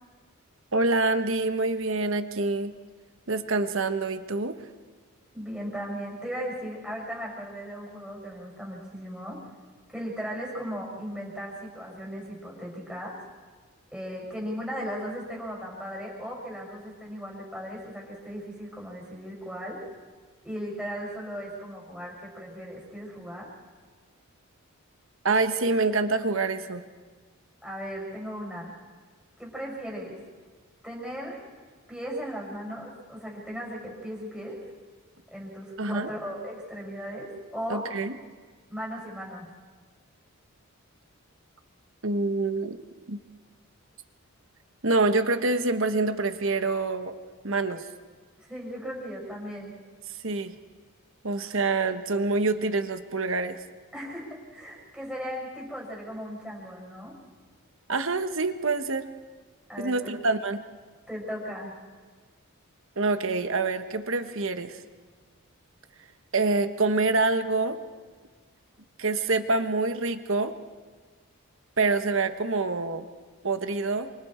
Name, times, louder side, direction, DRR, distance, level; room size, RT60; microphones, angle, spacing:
voice 1, 0.7-2.7 3.3-4.6 25.2-26.9 35.8-36.1 37.7-38.1 42.0-42.8 43.1-43.2 44.8-47.1 47.4-47.9 50.2-50.5 51.2-53.6 57.9-59.1 59.8-60.6 63.0-64.8 66.3-67.8 69.0-70.5 71.8-73.1 73.4-74.1, right 3 dB, 60° right, 9 dB, 1.2 m, -26 dB
voice 2, 5.3-9.4 9.9-13.2 13.9-19.8 20.4-23.5 27.6-28.7 29.4-30.2 30.8-31.4 31.9-34.6 35.3-37.9 38.7-39.5 48.4-49.7 53.9-57.1 59.7-60.1 61.1-61.7, equal, 5° right, -3 dB, 6.2 m, -37 dB
29.5 x 27.0 x 4.5 m, 1.5 s
head